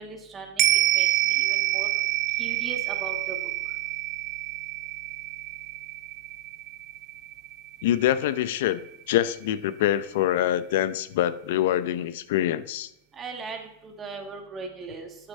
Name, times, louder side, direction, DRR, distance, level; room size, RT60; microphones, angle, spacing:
voice 1, 0.0-1.9 2.4-3.4 13.2-15.3, right 4 dB, 25° right, 1.8 m, -39 dB
sound 1, 0.6-9.1 9.5-9.6, right 16 dB, 45° right, 0.4 m, -27 dB
voice 2, 7.8-8.8 9.1-12.9, left 12 dB, 70° left, 0.5 m, -25 dB
9.6 x 6.4 x 2.7 m
hypercardioid pair, 120°, 0 cm